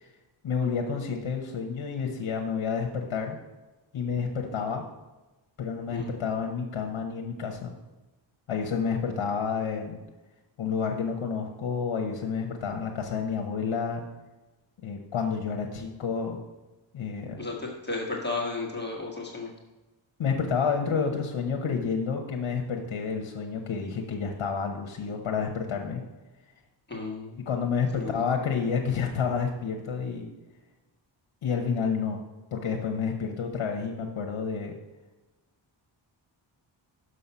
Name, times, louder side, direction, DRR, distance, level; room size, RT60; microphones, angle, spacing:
voice 1, 0.4-3.4 3.9-4.8 5.6-7.7 8.5-10.0 10.6-14.0 14.8-16.4 16.9-17.4 20.2-26.0 27.5-30.3 31.4-32.2 32.5-34.7, left 6 dB, 70° left, 3 dB, 1.0 m, -29 dB
voice 2, 17.4-19.5 26.9-27.4 28.0-28.2, left 3 dB, 20° left, -2 dB, 1.4 m, -33 dB
6.5 x 5.6 x 5.5 m, 1.1 s
wide cardioid pair, 145°, 48 cm